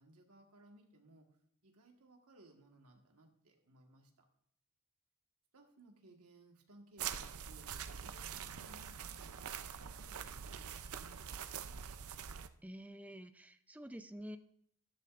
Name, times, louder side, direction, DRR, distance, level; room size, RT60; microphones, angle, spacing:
voice 1, 0.0-4.3 5.5-9.6 10.0-11.8, right 1 dB, 85° right, 2 dB, 1.6 m, -62 dB
sound 1, 7.0-12.5, right 8 dB, 70° right, 0.6 m, -44 dB
voice 2, 12.6-14.4, equal, 5° right, 10 dB, 0.5 m, -49 dB
12.0 x 12.0 x 2.5 m, 0.67 s
head